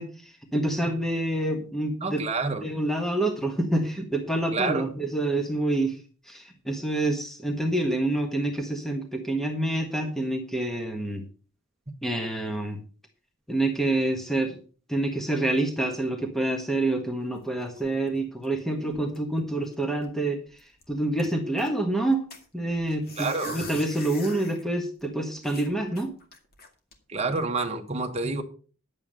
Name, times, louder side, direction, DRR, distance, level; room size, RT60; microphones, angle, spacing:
voice 1, 0.0-2.2 2.6-6.0 6.3-11.2 12.0-12.8 13.5-14.6 14.9-20.4 20.9-22.2 22.5-26.1, right 1 dB, ahead, 4 dB, 1.5 m, -27 dB
voice 2, 2.0-2.6 4.5-4.9 23.2-23.6 27.1-28.4, right 3 dB, 30° right, 5 dB, 1.4 m, -28 dB
sound 1, 17.2-18.6 18.9-19.4 19.7-19.8 20.0-20.2 20.6-21.7 22.3-24.6 25.0-25.1 25.4-26.9 27.4-27.6, left 3 dB, 50° left, 2.2 m, -43 dB
11.0 x 8.3 x 5.4 m, 0.38 s
head